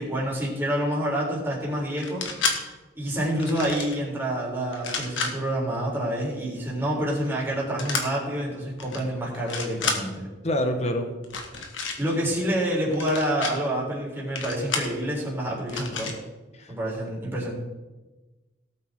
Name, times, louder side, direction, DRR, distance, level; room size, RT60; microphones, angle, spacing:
voice 1, 0.0-2.3 2.9-10.3 12.0-16.1 16.7-17.5, right 1 dB, 10° right, -5 dB, 4.0 m, -27 dB
sound 1, 2.0-2.6 3.4-4.0 4.7-5.3 7.8-8.0 8.8-9.0 9.3-10.0 11.2-12.0 12.9-13.5 14.4-14.9 15.7-16.2, left 4 dB, 75° left, 1.8 m, -30 dB
voice 2, 10.4-11.1 16.6-16.7, equal, 35° left, 5 dB, 1.5 m, -26 dB
18.0 x 8.3 x 3.8 m, 1.1 s
head